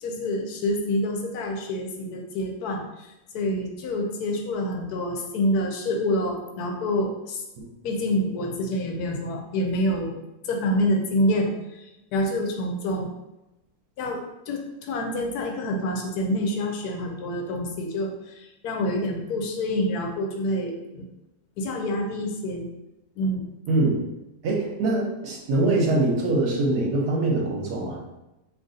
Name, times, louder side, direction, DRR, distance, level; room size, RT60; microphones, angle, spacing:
voice 1, 0.0-7.4 7.8-10.2 10.4-13.1 14.0-21.1 21.6-22.7 23.2-23.4, left 1 dB, 75° left, 2 dB, 1.1 m, -27 dB
voice 2, 24.4-28.0, right 2 dB, 80° right, -2 dB, 1.3 m, -23 dB
2.9 x 2.5 x 3.8 m, 0.95 s
omnidirectional pair, 1.7 m